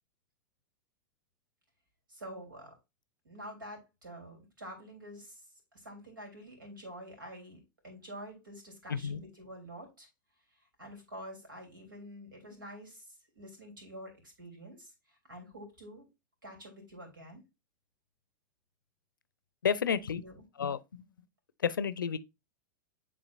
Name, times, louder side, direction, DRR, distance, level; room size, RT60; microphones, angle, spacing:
voice 1, 2.1-2.8 3.2-5.4 5.7-10.1 10.8-16.1 16.4-17.4 20.2-20.4, equal, 80° right, 3.3 m, -48 dB
voice 2, 8.9-9.2 19.6-20.2 20.6-21.1 21.6-22.2, left 7 dB, 80° left, 0.5 m, -31 dB
9.8 x 3.8 x 2.5 m
figure-of-eight pair, 95°, 11 cm